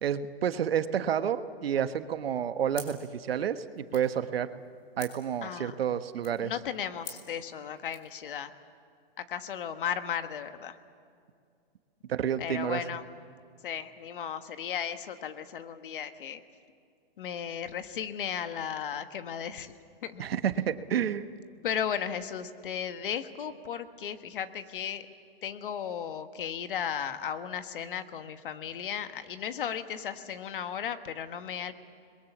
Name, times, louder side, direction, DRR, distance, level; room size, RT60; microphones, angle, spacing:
voice 1, 0.0-4.5 5.0-6.5 12.1-12.8 20.2-21.2, right 9 dB, 75° right, 11 dB, 1.3 m, -30 dB
sound 1, 2.7-8.1, left 6 dB, 30° left, 3.4 m, -49 dB
voice 2, 5.4-5.7 6.4-8.5 9.2-10.8 12.4-13.1 13.6-16.4 17.2-19.7 20.0-20.2 21.6-25.1 25.4-31.7, left 8 dB, 60° left, 10 dB, 1.5 m, -35 dB
29.5 x 21.5 x 7.3 m, 2.3 s
hypercardioid pair, 165°, 30 cm